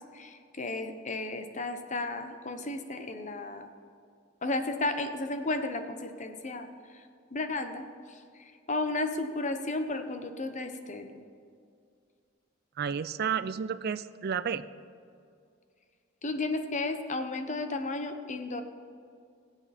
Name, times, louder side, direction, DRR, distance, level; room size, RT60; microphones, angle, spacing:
voice 1, 0.1-3.7 4.4-6.7 7.3-8.2 8.7-11.2 16.2-18.6, left 2 dB, 35° left, 7 dB, 0.9 m, -33 dB
voice 2, 12.8-14.6, right 7 dB, 50° right, 14 dB, 0.4 m, -31 dB
20.5 x 8.0 x 4.2 m, 2.3 s
head